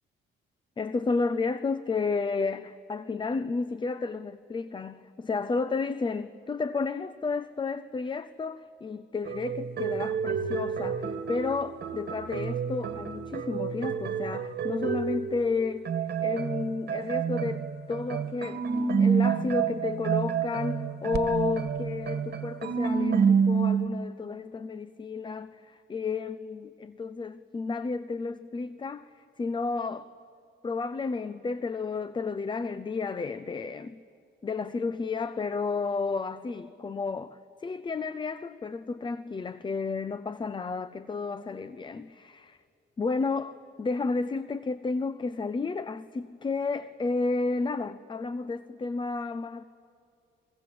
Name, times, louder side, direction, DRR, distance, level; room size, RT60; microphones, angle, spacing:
voice 1, 0.8-30.1 30.6-34.0 34.4-42.6 43.0-49.6, left 4 dB, 25° left, 0.5 m, -32 dB
sound 1, 9.2-15.5 15.9-23.9, right 6 dB, 55° right, 1.6 m, -28 dB
24.5 x 22.5 x 7.7 m
cardioid pair, 90°, 20 cm